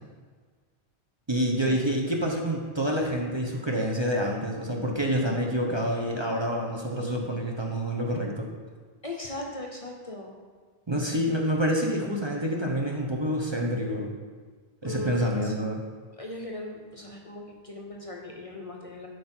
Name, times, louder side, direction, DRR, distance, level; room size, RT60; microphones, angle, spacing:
voice 1, 1.3-8.5 10.9-14.1 14.8-15.8, equal, 25° right, -1 dB, 1.0 m, -27 dB
voice 2, 9.0-10.3 14.8-15.5 16.2-19.1, left 1 dB, 35° left, 0 dB, 0.9 m, -38 dB
11.5 x 5.1 x 4.5 m, 1.5 s
omnidirectional pair, 1.1 m